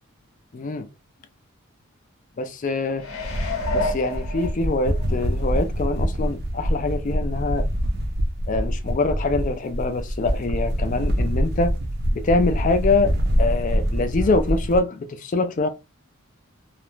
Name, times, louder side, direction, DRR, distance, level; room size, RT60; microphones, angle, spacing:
voice 1, 0.5-0.9 2.4-3.0 3.7-7.7 8.5-11.7 12.1-13.1 13.4-15.7, left 3 dB, 35° left, 0.4 m, -24 dB
sound 1, 3.0-5.0 5.5-5.6, left 2 dB, 80° left, 0.8 m, -29 dB
sound 2, 3.2-14.8, equal, 50° right, 0.5 m, -25 dB
2.4 x 2.0 x 3.1 m
head